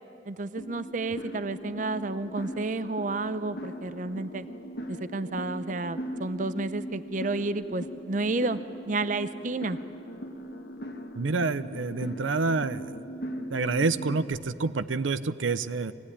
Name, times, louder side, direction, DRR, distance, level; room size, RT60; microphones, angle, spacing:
voice 1, 0.3-4.5 4.9-8.6 8.9-9.8, right 2 dB, 40° right, 12 dB, 0.6 m, -31 dB
sound 1, 0.6-14.4, equal, 55° left, 1.3 m, -39 dB
voice 2, 11.2-13.0 13.5-15.9, right 3 dB, 90° right, 12 dB, 0.7 m, -28 dB
24.0 x 17.5 x 9.9 m, 2.9 s
head